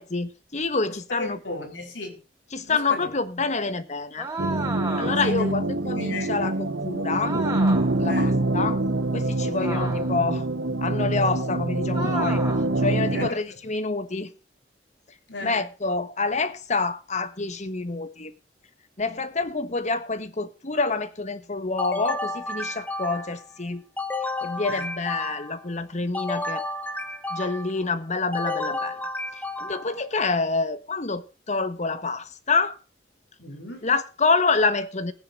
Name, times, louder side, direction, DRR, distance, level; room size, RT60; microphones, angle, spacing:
voice 1, 0.0-1.4 2.5-4.3 5.0-7.4 8.0-8.8 9.1-10.5 10.8-12.4 12.8-14.3 15.4-18.3 19.0-23.8 24.4-26.6 27.3-29.0 29.6-32.8 33.8-35.1, left 3 dB, 40° left, 1.2 m, -27 dB
voice 2, 1.1-2.2 2.7-3.1 5.2-5.5 5.9-6.5 8.1-8.4 9.6-9.7 13.1-13.6 15.3-15.7 24.7-24.9 33.4-33.9, left 2 dB, 80° left, 4.2 m, -35 dB
sound 1, 4.2-5.4 7.2-8.1 9.6-10.3 11.9-12.7, right 3 dB, 20° right, 4.1 m, -33 dB
sound 2, 4.4-13.3, right 2 dB, 85° right, 1.2 m, -25 dB
sound 3, 21.8-23.4 24.0-25.7 26.1-27.8 28.3-30.0, left 2 dB, 10° left, 1.1 m, -31 dB
20.5 x 9.7 x 2.6 m
head